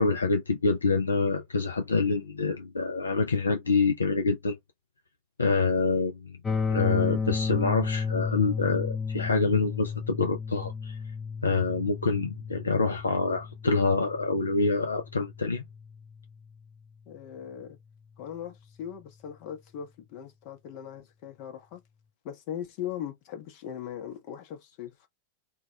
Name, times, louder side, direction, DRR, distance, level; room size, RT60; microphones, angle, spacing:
voice 1, 0.0-4.6 5.4-6.4 6.7-11.0 11.4-15.6, left 4 dB, 75° left, 0.4 m, -26 dB
sound 1, 6.4-16.4, left 5 dB, 15° left, 0.5 m, -33 dB
voice 2, 17.1-17.8 18.2-21.8 22.2-25.1, left 9 dB, 45° left, 0.8 m, -39 dB
2.2 x 2.2 x 2.8 m
figure-of-eight pair, 90°, 0 cm